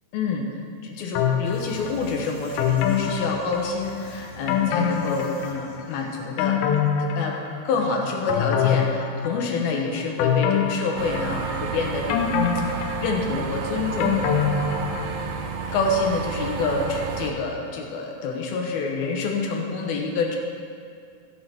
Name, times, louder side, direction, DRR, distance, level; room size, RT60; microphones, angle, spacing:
voice 1, 0.1-0.5 0.8-6.6 7.0-7.4 7.6-12.5 13.0-14.2 15.7-20.4, left 4 dB, 75° left, 1 dB, 2.6 m, -27 dB
sound 1, 1.2-2.0 2.6-4.0 4.5-5.8 6.2-7.8 8.3-9.6 10.2-11.6 12.1-15.4 15.7-15.8, left 7 dB, 90° left, 2.8 m, -25 dB
sound 2, 1.4-6.3, left 3 dB, 55° left, 1.0 m, -44 dB
sound 3, 11.0-17.3, right 5 dB, 80° right, 2.1 m, -31 dB
14.5 x 5.7 x 5.7 m, 2.3 s
omnidirectional pair, 4.9 m